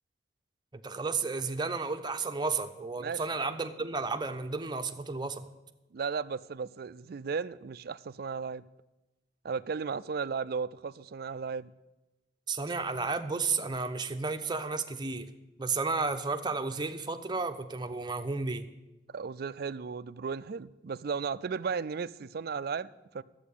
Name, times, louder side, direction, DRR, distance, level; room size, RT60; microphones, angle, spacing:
voice 1, 0.7-5.4 12.5-15.3 15.6-18.7, right 4 dB, 25° right, 0.8 m, -32 dB
voice 2, 3.0-3.5 5.9-8.6 9.4-11.7 19.1-23.2, right 5 dB, 55° right, 0.4 m, -35 dB
11.5 x 8.2 x 8.4 m
head